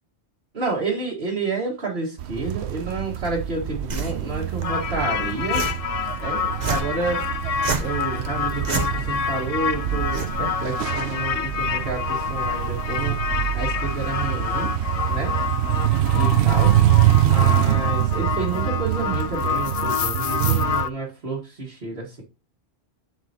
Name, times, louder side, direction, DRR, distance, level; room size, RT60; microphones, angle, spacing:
voice 1, 0.5-5.7 6.2-7.3 7.8-13.2 13.5-14.7 15.1-15.3 16.1-16.8 17.2-22.2, right 3 dB, 65° right, -4 dB, 1.9 m, -30 dB
sound 1, 2.2-20.8, right 12 dB, 90° right, 0.9 m, -24 dB
sound 2, 3.9-11.9, right 4 dB, 45° right, 1.0 m, -33 dB
sound 3, 4.6-20.9, left 7 dB, 55° left, 0.4 m, -28 dB
7.8 x 6.3 x 2.8 m, 0.29 s
omnidirectional pair, 1.1 m